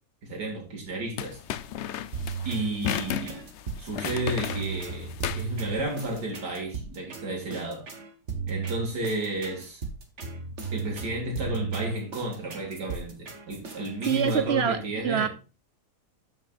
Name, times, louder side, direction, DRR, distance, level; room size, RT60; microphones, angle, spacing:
voice 1, 0.2-1.4 2.4-3.5 3.8-7.9 8.5-9.8 10.7-15.3, right 1 dB, 90° right, 2.9 m, -32 dB
sound 1, 1.2-6.2, left 10 dB, 75° left, 0.6 m, -34 dB
sound 2, 2.1-14.4, right 5 dB, 45° right, 1.7 m, -36 dB
voice 2, 14.1-15.3, right 8 dB, 70° right, 0.6 m, -26 dB
13.0 x 5.9 x 2.5 m
omnidirectional pair, 1.8 m